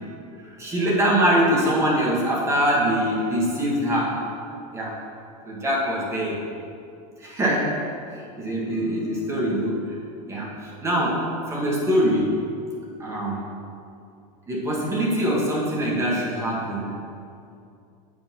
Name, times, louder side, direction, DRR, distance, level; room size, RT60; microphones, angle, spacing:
voice 1, 0.4-4.1 4.7-4.9 5.4-6.4 7.2-7.7 8.4-9.9 10.3-11.2 11.5-12.3 13.0-13.5 14.5-17.0, equal, 15° right, -5 dB, 1.8 m, -23 dB
8.7 x 4.1 x 6.0 m, 2.5 s
supercardioid pair, 150°, 19 cm